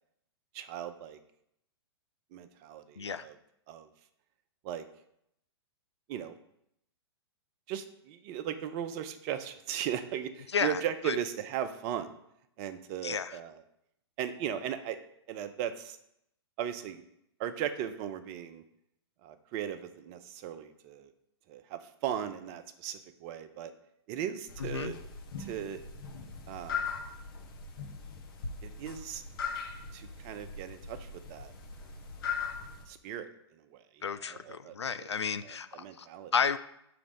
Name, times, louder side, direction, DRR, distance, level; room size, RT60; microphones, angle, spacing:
voice 1, 0.5-1.2 2.3-3.4 3.7-3.9 4.6-4.8 6.1-6.3 7.7-12.1 12.6-13.6 14.2-15.0 15.3-16.0 16.6-17.0 17.4-18.6 19.2-21.1 21.5-23.7 24.1-25.0 25.4-25.8 26.5-26.9 28.6-29.2 29.9-31.5 31.8-31.9 32.9-35.1 35.4-36.3, right 9 dB, 35° right, 10 dB, 0.6 m, -37 dB
voice 2, 10.5-11.2 13.0-13.4 24.6-24.9 34.0-36.1 36.3-36.6, left 6 dB, 80° left, 12 dB, 0.4 m, -32 dB
sound 1, 24.5-32.8, left 5 dB, 55° left, 1.2 m, -40 dB
5.9 x 3.2 x 5.2 m, 0.77 s
figure-of-eight pair, 105°, 14 cm